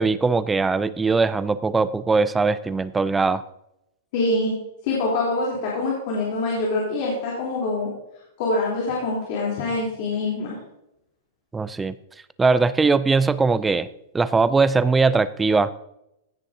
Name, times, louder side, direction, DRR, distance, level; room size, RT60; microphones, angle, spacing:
voice 1, 0.0-3.4 11.5-11.9 12.4-13.9 14.1-15.7, right 4 dB, 10° right, 14 dB, 0.3 m, -20 dB
voice 2, 4.1-4.5 4.8-7.9 8.4-10.6, left 2 dB, 50° left, -5 dB, 3.6 m, -25 dB
16.5 x 9.1 x 2.8 m, 0.84 s
supercardioid pair, 165°, 0 cm